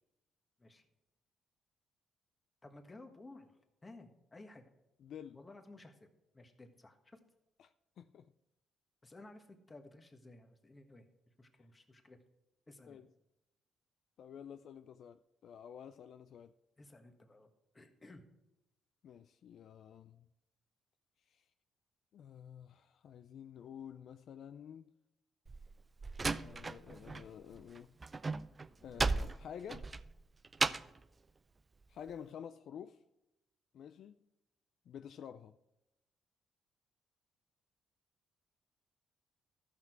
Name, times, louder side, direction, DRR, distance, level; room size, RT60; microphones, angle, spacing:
voice 1, 2.6-4.6 5.3-6.1 6.3-7.2 9.0-12.2 12.7-13.0 16.8-17.5 17.7-18.3, left 2 dB, 25° left, 1.5 m, -56 dB
voice 2, 5.0-5.4 7.6-8.3 12.9-13.1 14.2-16.5 19.0-20.3 21.3-21.4 22.1-24.8 26.2-27.9 28.8-29.9 31.9-33.0 33.7-34.2 34.9-35.6, left 8 dB, 70° left, 0.4 m, -50 dB
Slam, 25.5-27.3 27.5-31.0, right 3 dB, 30° right, 0.4 m, -36 dB
13.5 x 6.0 x 4.5 m
cardioid pair, 90°, 0 cm